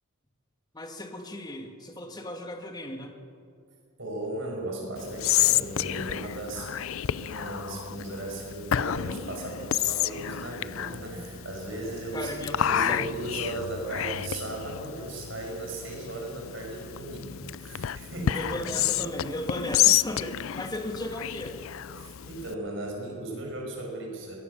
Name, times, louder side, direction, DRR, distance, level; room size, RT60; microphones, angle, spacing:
voice 1, 0.7-3.1 12.1-13.1 18.3-21.6, left 1 dB, 20° left, 4 dB, 1.8 m, -36 dB
voice 2, 4.0-6.7 7.1-12.3 12.6-18.7 19.0-19.1 21.9-24.4, right 2 dB, 65° right, 0 dB, 6.1 m, -36 dB
Whispering, 5.0-22.5, left 11 dB, 80° left, 0.5 m, -30 dB
22.5 x 18.0 x 6.8 m, 2.5 s
head